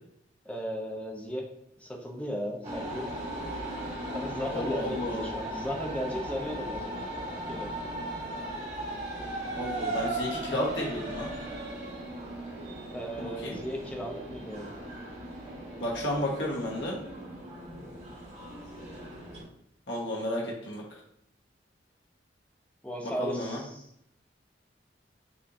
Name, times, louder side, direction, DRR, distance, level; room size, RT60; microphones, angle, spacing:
voice 1, 0.4-1.5 1.8-3.1 4.1-6.9 7.5-7.7 12.9-14.7 22.8-23.9, equal, 10° left, 0 dB, 0.6 m, -36 dB
sound 1, 2.6-19.4, right 1 dB, 40° right, 1.2 m, -37 dB
voice 2, 4.5-5.2 9.6-11.3 13.2-13.6 15.8-17.0 19.9-20.8 23.2-23.6, left 1 dB, 75° left, -2 dB, 1.2 m, -32 dB
5.6 x 2.9 x 2.5 m, 0.74 s
head